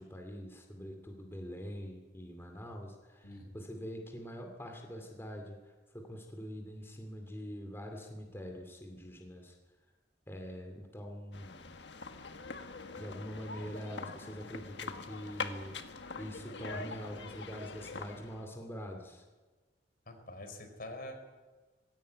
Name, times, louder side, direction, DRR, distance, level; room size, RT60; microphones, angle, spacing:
voice 1, 0.0-9.6 10.3-11.6 13.0-15.8 16.1-19.2, equal, 15° left, 2 dB, 2.6 m, -44 dB
sound 1, 11.3-18.5, left 4 dB, 75° left, 1.6 m, -44 dB
voice 2, 20.1-21.1, left 1 dB, 55° left, 6 dB, 4.3 m, -45 dB
20.5 x 17.0 x 9.5 m, 1.3 s
head